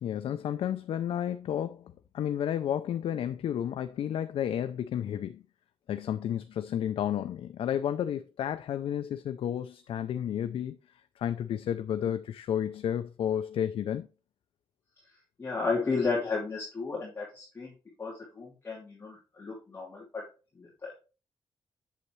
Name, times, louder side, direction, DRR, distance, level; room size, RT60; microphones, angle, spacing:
voice 1, 0.0-5.4 5.9-10.8 11.2-14.1, left 10 dB, 75° left, 0.4 m, -32 dB
voice 2, 15.4-17.7 18.0-20.3 20.5-20.9, left 4 dB, 25° left, 2.8 m, -33 dB
8.2 x 7.1 x 3.2 m
wide cardioid pair, 170°, 9 cm